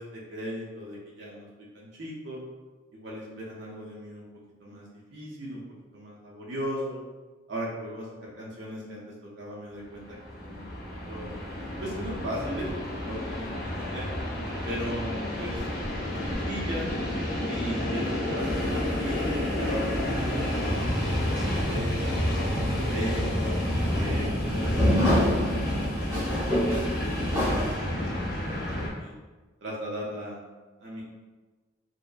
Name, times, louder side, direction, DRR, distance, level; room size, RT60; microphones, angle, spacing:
voice 1, 0.0-2.4 2.9-4.3 4.6-5.6 5.9-7.0 7.5-10.0 10.4-10.6 11.1-11.4 11.8-12.7 13.1-14.1 14.6-15.7 16.2-16.9 17.4-20.9 21.2-22.2 22.6-23.6 23.9-28.2 28.5-29.1 29.6-30.4 30.8-31.0, equal, 55° right, -4 dB, 0.5 m, -37 dB
Train, 9.9-28.9, left 1 dB, 45° left, 0.6 m, -30 dB
sound 1, 18.4-27.7, equal, 15° right, 0.8 m, -29 dB
2.7 x 2.2 x 2.3 m, 1.3 s
head